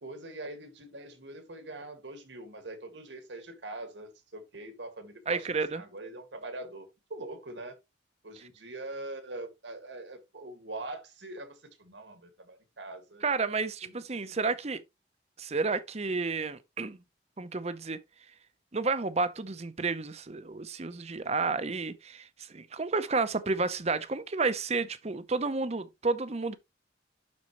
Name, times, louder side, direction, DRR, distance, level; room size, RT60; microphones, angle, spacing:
voice 1, 0.0-7.8 8.2-13.2 13.8-14.4, right 2 dB, 80° right, 1.9 m, -43 dB
voice 2, 5.3-5.8 13.2-14.8 15.4-17.0 17.4-18.0 18.7-26.6, right 4 dB, 35° right, 0.7 m, -31 dB
11.5 x 4.4 x 3.0 m
head